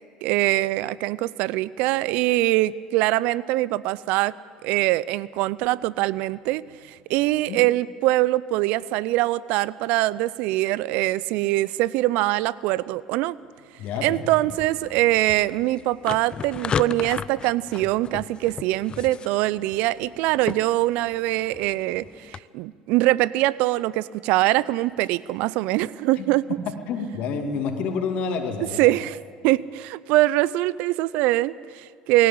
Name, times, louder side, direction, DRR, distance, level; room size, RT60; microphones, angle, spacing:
voice 1, 0.2-4.3 4.6-13.4 14.0-26.5 28.8-29.2 29.4-32.3, right 17 dB, 65° right, 20 dB, 0.5 m, -23 dB
voice 2, 13.8-14.5 26.2-26.3 26.7-28.9, left 5 dB, 60° left, 3 dB, 2.5 m, -29 dB
sound 1, 14.5-22.4, left 7 dB, 35° left, 0.5 m, -35 dB
18.5 x 17.0 x 8.6 m, 2.2 s
hypercardioid pair, 70°, 3 cm